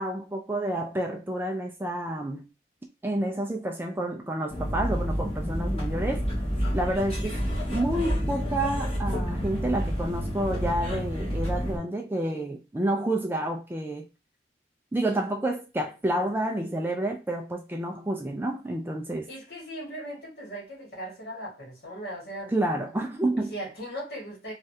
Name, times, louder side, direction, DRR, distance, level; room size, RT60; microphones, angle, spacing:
voice 1, 0.0-2.5 3.0-6.3 6.7-7.4 7.7-14.1 14.9-19.3 22.5-23.5, right 1 dB, 10° right, 0.3 m, -29 dB
sound 1, 4.5-11.8, equal, 30° left, 1.1 m, -29 dB
voice 2, 19.3-22.5 23.5-24.5, right 1 dB, 55° left, 1.7 m, -38 dB
3.1 x 2.4 x 2.7 m
head